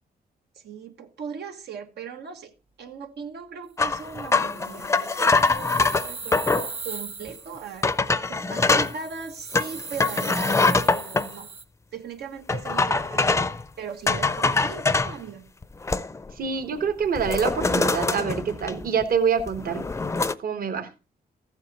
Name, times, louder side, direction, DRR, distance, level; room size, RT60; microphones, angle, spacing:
voice 1, 0.5-7.9 8.3-11.5 11.9-13.4 13.8-15.5, right 6 dB, 90° right, 1.3 m, -39 dB
sound 1, 3.8-6.7 7.3-7.4 7.8-8.9 9.5-11.3 12.5-13.6 14.1-15.1 15.6-16.3 16.6-16.8 17.1-19.0 19.4-20.3, left 3 dB, 15° left, 0.5 m, -23 dB
sound 2, 4.0-7.9 8.6-11.6, right 4 dB, 35° right, 1.1 m, -39 dB
voice 2, 16.3-19.8 20.4-20.9, right 6 dB, 60° right, 1.3 m, -26 dB
14.0 x 8.0 x 4.1 m
wide cardioid pair, 145°, 17 cm